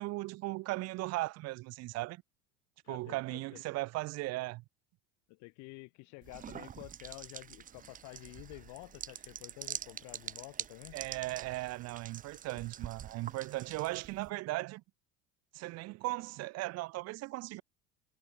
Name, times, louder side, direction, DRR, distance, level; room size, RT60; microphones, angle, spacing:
voice 1, 0.0-2.2 2.9-4.6 10.9-14.8 15.5-17.6, right 20 dB, 60° right, 1.0 m, -37 dB
voice 2, 2.8-3.6 5.3-11.0 12.5-12.6, left 28 dB, 75° left, 6.3 m, -50 dB
sound 1, 6.2-14.3, right 9 dB, 30° right, 0.8 m, -46 dB
supercardioid pair, 120°, 29 cm